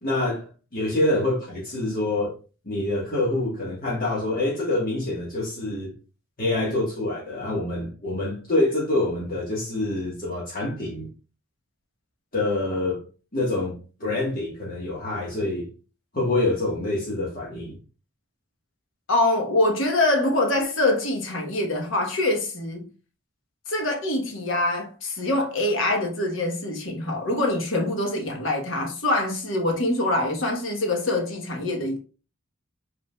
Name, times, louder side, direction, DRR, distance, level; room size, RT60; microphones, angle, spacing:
voice 1, 0.0-2.3 2.6-5.9 6.4-11.1 12.3-13.0 13.3-15.7 16.1-17.8, left 2 dB, 45° left, 1.4 m, -26 dB
voice 2, 19.1-22.9 23.7-32.0, left 2 dB, 65° left, 1.1 m, -24 dB
5.5 x 3.7 x 2.3 m
head